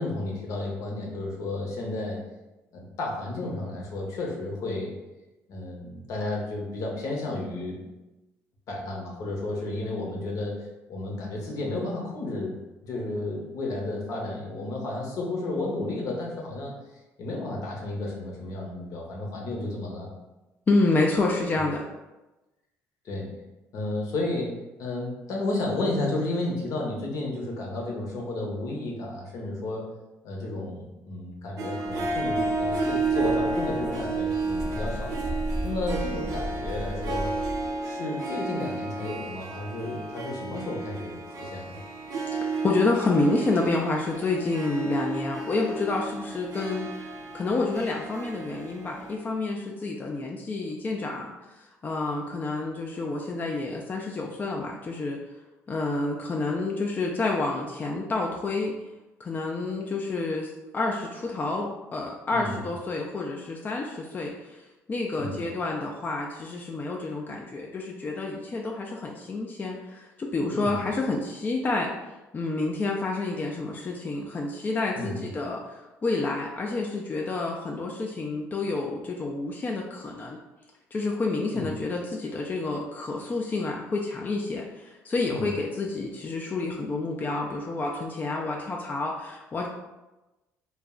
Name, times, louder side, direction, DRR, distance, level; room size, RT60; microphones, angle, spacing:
voice 1, 0.0-2.2 2.7-4.9 5.5-7.8 8.7-12.6 12.8-16.7 17.2-20.1 21.6-21.7 23.0-23.3 23.7-29.9 30.2-35.1 35.6-37.3 37.8-41.8 62.3-62.7 65.2-65.4 70.5-70.9 75.0-75.3 81.5-81.7 85.3-85.6, left 2 dB, 65° left, -1 dB, 0.8 m, -32 dB
voice 2, 20.7-21.8 42.3-46.9 47.3-55.2 55.7-58.8 59.2-71.9 72.3-80.4 80.9-89.7, left 3 dB, 30° left, 0 dB, 0.3 m, -29 dB
Harp, 31.6-49.2, right 3 dB, 65° right, 0.5 m, -32 dB
sound 1, 31.9-37.8, right 1 dB, 10° right, 0.7 m, -36 dB
2.3 x 2.1 x 3.6 m, 1.0 s
supercardioid pair, 85°, 6 cm